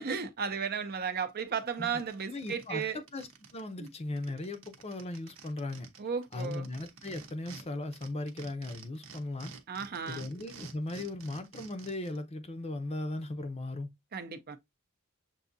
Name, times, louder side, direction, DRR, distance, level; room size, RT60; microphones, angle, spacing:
voice 1, 0.0-3.0 3.8-3.9 6.0-6.7 9.7-10.3 14.1-14.6, right 6 dB, 50° right, 0.6 m, -34 dB
sound 1, 1.3-1.4 1.7-3.6 3.9-4.0 4.2-7.6 7.9-12.2, right 5 dB, 70° right, 0.9 m, -50 dB
voice 2, 2.3-5.9 6.3-9.5 10.1-13.9, left 2 dB, 30° left, 0.6 m, -38 dB
6.9 x 2.7 x 2.6 m
head